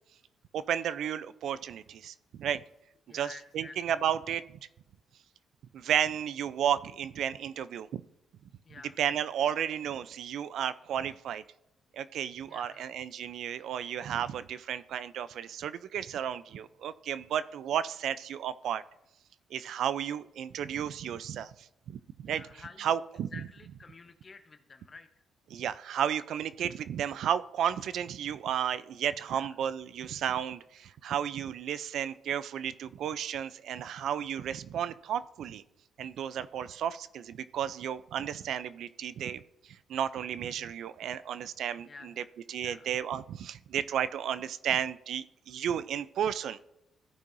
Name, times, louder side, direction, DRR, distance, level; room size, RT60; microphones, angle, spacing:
voice 1, 0.5-2.6 3.1-3.3 3.5-4.4 5.7-8.0 9.0-11.4 11.9-18.8 19.5-22.4 22.8-23.3 25.5-35.6 36.0-39.4 39.7-42.1 42.5-46.6, right 9 dB, 70° right, 15 dB, 0.4 m, -33 dB
voice 2, 3.1-3.8 8.6-9.0 12.4-12.9 22.2-23.0 23.3-25.1 29.3-29.6 41.9-42.3 42.6-42.9, left 4 dB, 35° left, 7 dB, 0.7 m, -50 dB
15.0 x 5.4 x 2.6 m, 0.87 s
cardioid pair, 90°, 0 cm